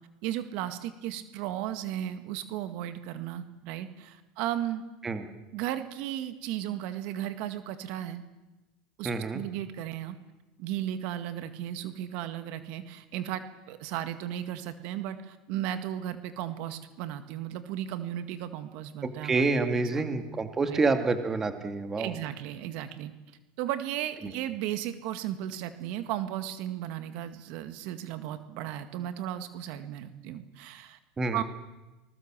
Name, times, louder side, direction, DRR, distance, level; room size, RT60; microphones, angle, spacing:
voice 1, 0.2-4.8 5.5-8.2 9.0-10.2 10.6-19.6 19.9-20.2 20.7-20.8 22.0-23.1 23.6-31.0 31.3-31.4, right 12 dB, 60° right, 10 dB, 2.0 m, -35 dB
voice 2, 9.0-9.4 19.0-22.1 24.2-24.3 31.2-31.4, right 3 dB, 20° right, 7 dB, 2.3 m, -28 dB
27.0 x 20.0 x 7.6 m, 1.1 s
supercardioid pair, 130°, 2 cm